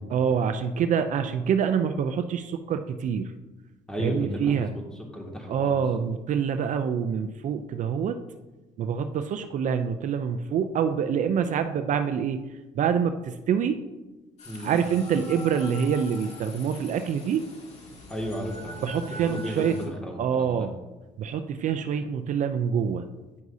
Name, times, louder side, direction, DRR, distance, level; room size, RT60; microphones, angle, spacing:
voice 1, 0.1-3.3 4.0-4.7 5.5-8.2 8.8-12.4 12.7-13.8 14.6-17.4 18.8-19.8 20.2-20.7 21.2-23.0, right 7 dB, 60° right, 8 dB, 0.5 m, -26 dB
voice 2, 3.9-4.8 5.1-5.8 14.4-14.8 18.1-20.7, equal, 5° left, -1 dB, 1.9 m, -34 dB
sound 1, 14.4-19.9, left 1 dB, 50° left, 2.2 m, -43 dB
9.5 x 6.0 x 2.7 m, 1.1 s
cardioid pair, 90°, 15 cm